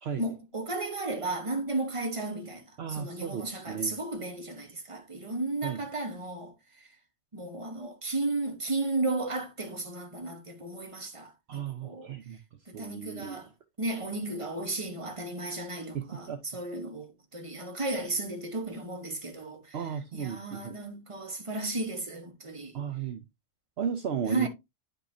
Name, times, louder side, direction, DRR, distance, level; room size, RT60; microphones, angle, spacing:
voice 1, 0.2-6.9 7.3-12.1 12.7-13.5 13.8-19.8 20.1-22.7 24.3-24.5, right 2 dB, 25° right, 1.4 m, -34 dB
voice 2, 2.8-4.0 5.6-5.9 11.5-12.4 12.7-13.4 15.9-16.4 19.7-20.8 22.7-23.2 23.8-24.5, right 7 dB, 60° right, 0.9 m, -34 dB
9.8 x 5.3 x 2.7 m
omnidirectional pair, 1.3 m